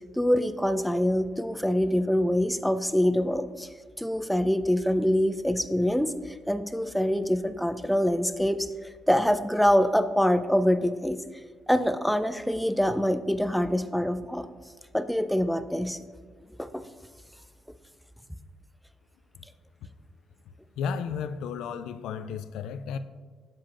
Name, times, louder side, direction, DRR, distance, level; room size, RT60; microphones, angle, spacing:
voice 1, 0.1-3.7 4.0-11.2 11.7-14.5 14.9-16.0 16.6-16.8, equal, ahead, 11 dB, 0.4 m, -25 dB
voice 2, 20.8-23.0, left 6 dB, 85° left, 11 dB, 0.3 m, -33 dB
7.5 x 7.2 x 2.5 m, 1.5 s
cardioid pair, 90°, 0 cm